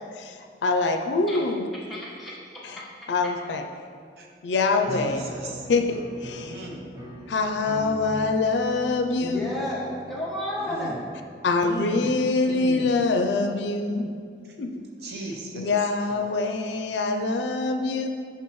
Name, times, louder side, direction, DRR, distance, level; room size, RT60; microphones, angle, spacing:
voice 1, 0.2-1.7 2.6-2.8 3.1-3.6 4.4-5.2 5.7-6.5 7.3-9.4 11.4-14.1 14.6-14.7 15.5-18.1, left 3 dB, 85° left, 5 dB, 0.4 m, -24 dB
voice 2, 1.9-2.3 9.2-11.0, left 1 dB, ahead, -9 dB, 1.2 m, -31 dB
sound 1, 4.8-13.2, equal, 20° right, 0.8 m, -43 dB
voice 3, 4.9-5.6 6.4-6.9 10.6-11.0 11.6-12.1 12.4-12.9 14.4-14.6 15.0-16.4, right 2 dB, 65° right, 0 dB, 0.7 m, -37 dB
5.9 x 5.9 x 3.1 m, 2.2 s
head